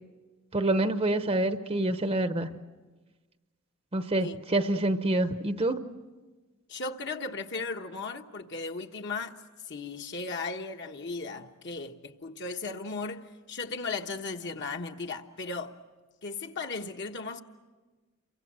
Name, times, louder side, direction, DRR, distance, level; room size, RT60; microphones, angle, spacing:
voice 1, 0.5-2.5 3.9-5.8, right 1 dB, 25° right, 0.8 m, -27 dB
voice 2, 6.7-9.4 9.7-15.8 16.2-17.4, left 3 dB, 55° left, 1.3 m, -36 dB
29.0 x 24.0 x 7.6 m
head